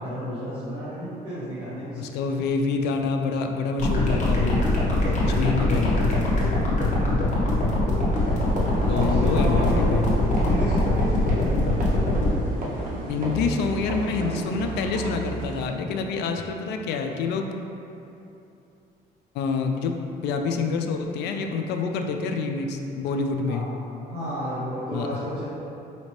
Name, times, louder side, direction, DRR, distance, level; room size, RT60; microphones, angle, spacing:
voice 1, 0.0-2.4 6.9-7.6 8.8-9.8 10.4-11.5 20.2-20.4 23.5-23.6 24.0-25.4, equal, 30° right, -13 dB, 1.2 m, -32 dB
voice 2, 2.0-4.6 5.2-6.1 8.9-10.0 13.1-17.5 19.3-23.7 24.9-25.1 25.3-25.4, left 4 dB, 80° left, 4 dB, 0.4 m, -27 dB
sound 1, 3.8-12.4, left 2 dB, 45° left, 1.1 m, -22 dB
sound 2, 8.1-15.7, right 2 dB, 55° right, 0.7 m, -33 dB
5.0 x 2.7 x 3.1 m, 2.8 s
cardioid pair, 110°, 17 cm